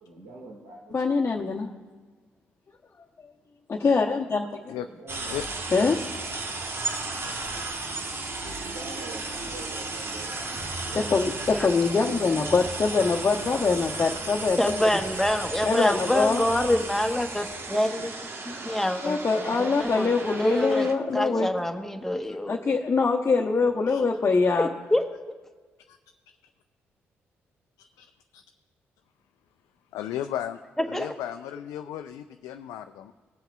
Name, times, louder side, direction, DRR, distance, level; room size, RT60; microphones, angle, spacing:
voice 1, 0.0-0.9 4.9-5.7 8.4-11.7 11.9-12.2 14.5-14.7 15.3-15.4 17.7-17.8 18.5-18.6 19.4-20.1, right 2 dB, 80° right, -2 dB, 2.1 m, -45 dB
voice 2, 0.9-1.7 3.2-3.3 3.7-4.7 5.7-6.3 10.9-14.8 15.6-16.4 16.7-16.8 19.0-21.5 22.5-24.7, left 4 dB, 40° left, -1 dB, 0.9 m, -24 dB
sound 1, 5.1-20.9, right 3 dB, 40° right, 1.3 m, -34 dB
voice 3, 14.6-17.9 18.6-19.2 19.6-20.9 21.1-22.6 24.6-25.0 30.9-31.1, left 1 dB, 5° left, 5 dB, 1.2 m, -26 dB
voice 4, 29.9-33.1, left 11 dB, 70° left, 7 dB, 0.4 m, -35 dB
21.0 x 7.8 x 2.4 m, 1.4 s
hypercardioid pair, 40°, 6 cm